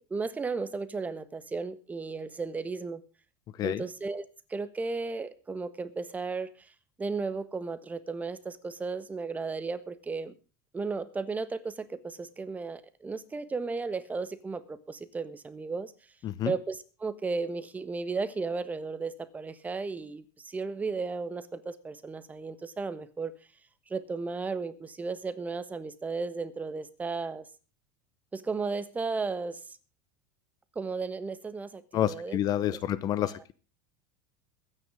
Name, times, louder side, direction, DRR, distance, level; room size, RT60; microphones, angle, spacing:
voice 1, 0.0-3.0 3.6-6.7 7.0-10.3 10.7-15.9 16.4-23.3 23.9-27.4 28.3-29.6 30.7-32.4 33.2-33.3, right 4 dB, 15° right, 12 dB, 1.4 m, -34 dB
voice 2, 3.5-3.8 16.2-16.5 31.9-33.5, left 11 dB, 40° left, 17 dB, 0.9 m, -29 dB
22.5 x 9.7 x 3.6 m, 0.34 s
supercardioid pair, 125°, 10 cm